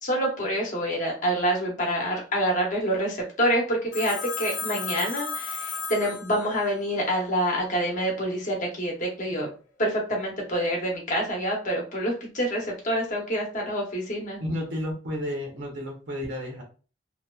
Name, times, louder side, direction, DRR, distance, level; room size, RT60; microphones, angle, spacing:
voice 1, 0.0-9.5 9.8-14.4, equal, 45° left, -1 dB, 0.8 m, -27 dB
Telephone, 3.9-6.8, left 5 dB, 80° left, 0.7 m, -34 dB
voice 2, 14.4-16.6, equal, 75° right, 0 dB, 0.8 m, -32 dB
2.8 x 2.2 x 2.3 m, 0.36 s
head